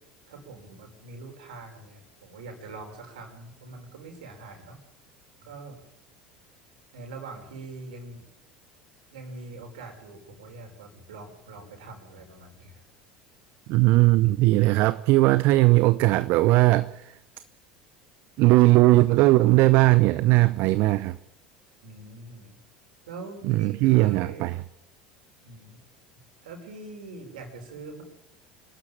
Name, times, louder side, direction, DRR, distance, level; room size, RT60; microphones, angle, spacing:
voice 1, 0.3-4.8 5.4-5.8 6.9-8.2 9.1-12.9 21.8-22.6 23.1-24.5 25.4-25.8 26.4-28.0, right 3 dB, 75° right, 5.9 m, -43 dB
voice 2, 13.7-17.2 18.4-21.2 23.4-24.6, right 19 dB, 55° right, 0.7 m, -19 dB
26.5 x 12.5 x 8.8 m
figure-of-eight pair, 70°, 4 cm